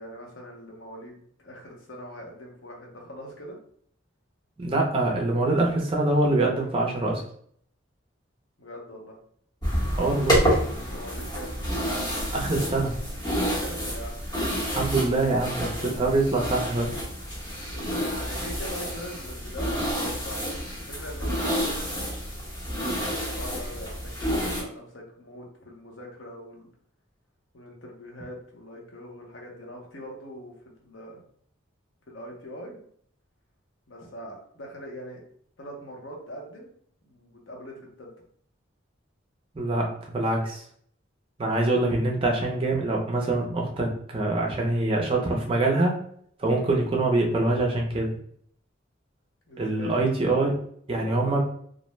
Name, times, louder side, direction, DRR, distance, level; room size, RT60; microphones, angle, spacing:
voice 1, 0.0-3.6 8.6-9.1 10.7-11.5 13.4-14.3 17.7-22.0 22.8-26.7 27.5-31.2 32.1-32.8 33.9-35.2 35.6-36.7 37.0-38.1 46.5-46.7 49.5-50.0 50.9-51.4, equal, 70° left, -1 dB, 0.8 m, -42 dB
voice 2, 4.6-7.2 10.0-10.4 12.3-12.9 14.7-16.9 39.5-40.6 41.4-46.0 46.4-48.1 49.6-50.6 50.9-51.4, right 2 dB, 25° right, 0 dB, 0.4 m, -24 dB
sound 1, 9.6-24.6, equal, 20° left, 0.9 m, -29 dB
2.5 x 2.1 x 3.0 m, 0.63 s
head